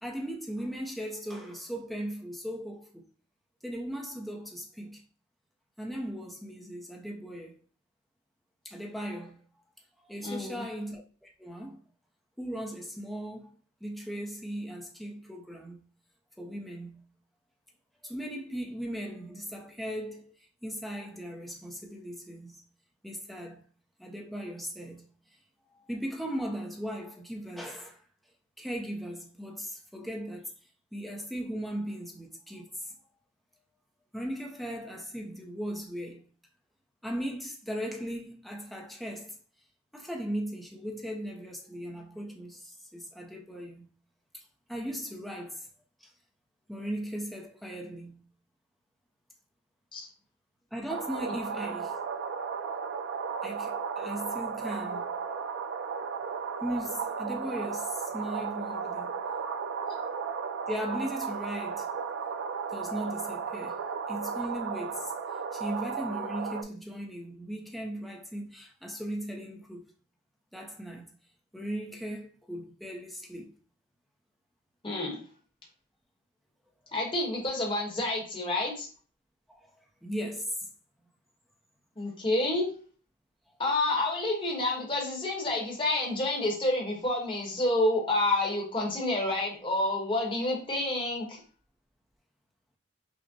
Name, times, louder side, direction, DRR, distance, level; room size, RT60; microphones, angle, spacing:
voice 1, 0.0-3.0 3.6-5.0 5.8-7.6 8.6-9.4 10.0-11.8 12.4-15.8 16.4-17.1 18.0-20.3 20.6-22.6 23.0-23.6 24.0-25.1 25.7-28.0 28.6-30.5 30.9-32.9 34.1-36.2 37.0-39.4 39.9-43.9 44.3-44.4 44.7-45.7 46.0-46.1 46.7-48.2 50.7-52.0 53.4-55.1 56.6-59.1 60.7-61.9 62.7-63.8 64.1-65.1 65.5-69.8 70.5-71.1 71.5-73.6 79.5-80.7, equal, ahead, 0.5 m, -38 dB
voice 2, 10.2-10.6 49.9-50.1 74.8-75.2 76.9-78.9 82.0-82.7 83.6-91.4, left 2 dB, 25° left, 0.9 m, -29 dB
sound 1, 50.9-66.6, right 6 dB, 60° right, 0.3 m, -35 dB
5.9 x 2.0 x 2.7 m
head